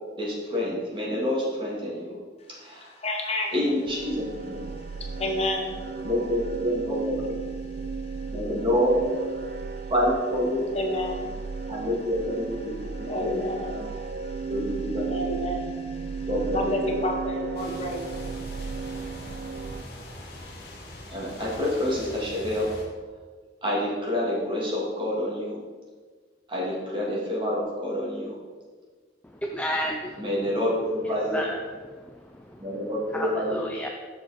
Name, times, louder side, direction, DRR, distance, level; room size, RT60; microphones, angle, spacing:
voice 1, 0.2-2.1 2.6-3.0 3.5-4.7 6.0-7.4 8.3-9.0 9.9-10.7 11.7-12.6 13.2-13.4 14.5-15.0 16.3-16.9 21.1-22.7 23.6-25.6 26.5-28.4 30.2-31.4 32.6-33.7, left 1 dB, 30° right, -5 dB, 2.5 m, -27 dB
voice 2, 3.0-3.7 4.8-6.1 8.0-8.3 9.6-9.9 10.7-11.7 13.0-14.5 15.1-18.0, left 1 dB, 35° left, 1 dB, 1.0 m, -31 dB
sound 1, 3.8-19.8, right 4 dB, 55° right, 0.3 m, -34 dB
sound 2, 17.6-22.9, left 1 dB, 60° left, 1.9 m, -42 dB
voice 3, 29.4-30.2 31.3-31.6 31.9-32.6 33.1-33.9, equal, 10° left, 1 dB, 0.5 m, -31 dB
7.6 x 6.8 x 4.3 m, 1.4 s
head